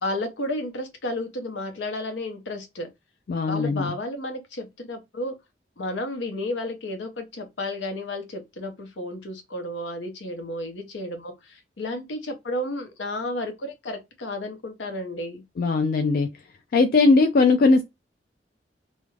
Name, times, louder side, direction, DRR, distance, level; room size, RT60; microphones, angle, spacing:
voice 1, 0.0-2.9 3.5-5.3 5.8-15.4, left 1 dB, 85° left, 0.7 m, -32 dB
voice 2, 3.3-3.9 15.6-16.3 16.7-17.8, left 3 dB, 55° left, 0.3 m, -19 dB
2.4 x 2.1 x 3.1 m
head